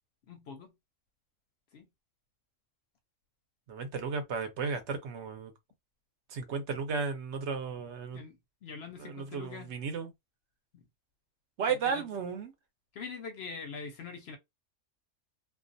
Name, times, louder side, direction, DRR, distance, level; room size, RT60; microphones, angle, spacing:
voice 1, 0.3-0.7 1.7-1.9 8.1-9.8 10.7-10.8 11.8-12.0 12.9-14.4, left 5 dB, 65° left, 0.7 m, -44 dB
voice 2, 3.7-5.5 6.3-8.2 9.0-10.1 11.6-12.5, right 5 dB, 65° right, 0.9 m, -34 dB
2.4 x 2.3 x 2.5 m
omnidirectional pair, 1.4 m